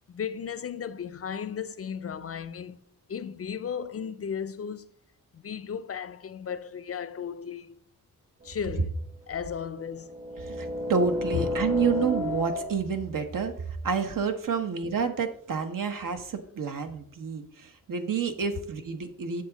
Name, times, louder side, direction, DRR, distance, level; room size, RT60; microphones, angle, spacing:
voice 1, 0.0-2.8 3.1-4.9 5.3-7.8 8.4-8.9 9.3-10.2 11.3-11.5, left 7 dB, 45° left, 0.5 m, -35 dB
sound 1, 8.4-8.5 9.6-13.1, left 2 dB, 45° right, 1.3 m, -32 dB
voice 2, 10.5-13.5 13.8-19.4, right 6 dB, 70° right, 1.1 m, -29 dB
8.2 x 7.0 x 3.9 m
wide cardioid pair, 150°, 34 cm